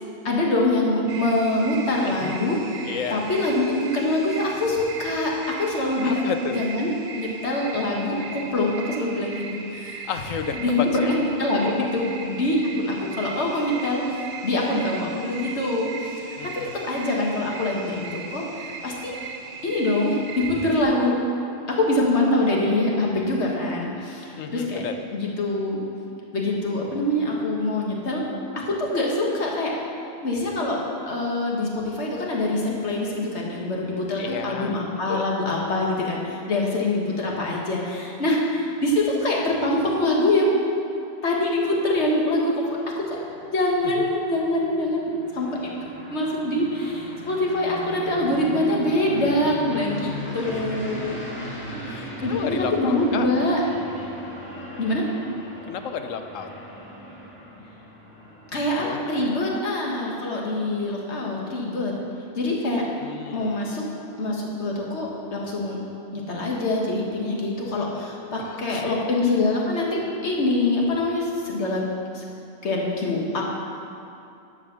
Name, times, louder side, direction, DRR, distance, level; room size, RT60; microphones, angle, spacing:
voice 1, 0.2-2.6 3.1-6.9 7.2-9.4 9.7-10.0 10.5-11.1 11.4-19.1 19.6-21.1 21.7-24.8 25.1-25.8 26.3-28.2 28.5-29.7 30.2-40.5 41.2-43.2 43.4-45.7 46.1-51.2 52.2-53.6 54.8-55.1 58.5-61.9 62.3-62.8 63.3-63.8 64.2-65.8 66.1-71.8 72.1-72.2 72.6-73.4, left 1 dB, 60° left, -2 dB, 1.7 m, -24 dB
sound 1, 1.1-20.8, right 5 dB, 60° right, 0.9 m, -38 dB
voice 2, 2.0-2.5 2.8-3.2 6.0-6.6 10.1-11.1 16.4-16.9 24.4-24.9 34.2-34.8 35.1-35.3 43.8-44.1 50.4-50.8 51.1-51.2 51.8-53.3 55.7-56.5 58.8-59.4 63.0-63.7 68.4-69.1, left 7 dB, 80° left, 7 dB, 1.1 m, -32 dB
sound 2, 42.7-59.9, equal, 10° left, 2.3 m, -39 dB
11.5 x 5.2 x 6.7 m, 2.7 s
omnidirectional pair, 1.3 m